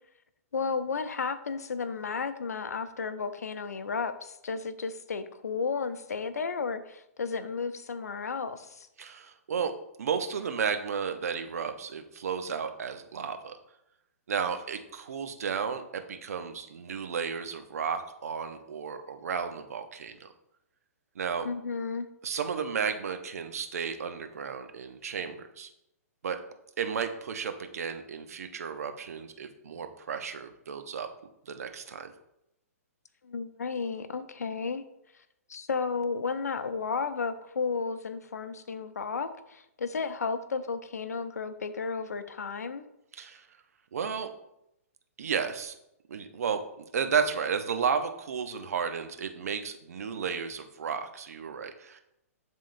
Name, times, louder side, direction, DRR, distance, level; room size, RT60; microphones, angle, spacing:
voice 1, 0.5-8.9 21.4-22.1 33.2-34.8 35.5-42.8, left 5 dB, 80° left, 11 dB, 0.6 m, -33 dB
voice 2, 9.0-9.7 10.0-13.6 14.3-20.3 21.1-21.5 22.2-25.7 26.2-26.4 26.8-31.1 31.5-32.1 43.1-43.5 43.9-44.3 45.2-45.8 46.1-52.0, right 6 dB, 70° right, 7 dB, 0.8 m, -33 dB
10.5 x 3.7 x 2.6 m, 0.82 s
hypercardioid pair, 125°, 8 cm